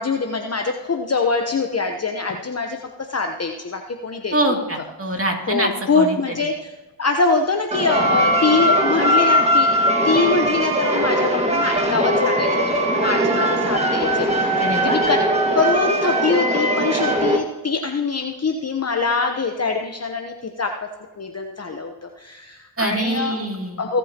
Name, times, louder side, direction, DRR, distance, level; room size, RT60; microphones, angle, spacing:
voice 1, 0.0-2.8 3.1-4.6 5.5-6.7 7.0-9.7 10.0-15.2 15.5-20.9 21.2-23.4 23.8-24.0, left 4 dB, 35° left, 4 dB, 0.9 m, -23 dB
voice 2, 4.3-6.2 14.6-15.0 22.8-23.8, right 1 dB, 30° right, 1 dB, 2.7 m, -24 dB
sound 1, 7.7-17.4, equal, 15° right, 1.8 m, -20 dB
Wind instrument woodwind instrument, 7.9-13.8, right 7 dB, 60° right, 1.7 m, -32 dB
21.0 x 8.4 x 2.9 m, 1.2 s
cardioid pair, 50°, 44 cm